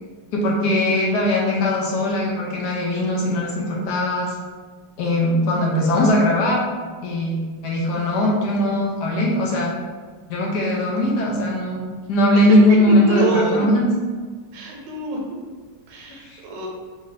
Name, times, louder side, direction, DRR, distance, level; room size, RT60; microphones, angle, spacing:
voice 1, 0.3-4.4 5.0-6.6 7.0-9.8 10.3-13.9 16.2-16.4, left 1 dB, 70° left, -2 dB, 1.1 m, -20 dB
voice 2, 13.1-13.6 14.5-15.2 15.9-16.7, right 3 dB, 75° right, 0 dB, 1.3 m, -25 dB
3.8 x 2.7 x 3.2 m, 1.5 s
omnidirectional pair, 2.1 m